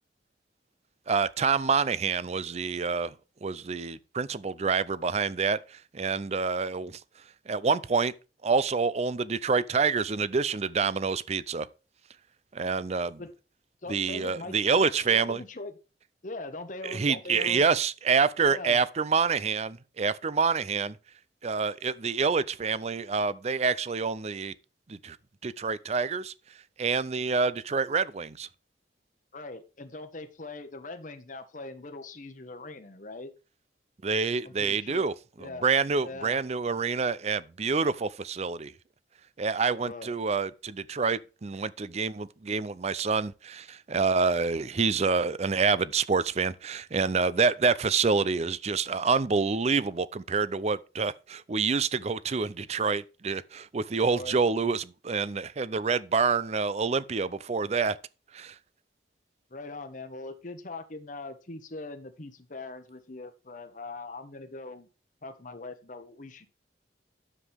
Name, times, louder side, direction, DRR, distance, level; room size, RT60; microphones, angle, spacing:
voice 1, 1.1-3.1 3.4-5.6 5.9-7.0 7.5-8.1 8.4-11.7 12.5-13.2 13.9-15.4 16.8-21.0 21.4-24.5 24.9-25.2 25.4-26.3 26.8-28.5 34.0-35.1 35.4-38.7 39.4-58.0 58.3-58.5, right 5 dB, 40° right, 0.5 m, -27 dB
voice 2, 13.8-15.7 16.2-17.6 18.4-18.8 29.3-33.3 34.4-35.1 35.4-35.7 36.0-36.4 39.8-40.1 54.0-54.4 59.5-64.9 65.2-66.5, left 2 dB, 50° left, 1.1 m, -41 dB
9.8 x 7.3 x 3.5 m
head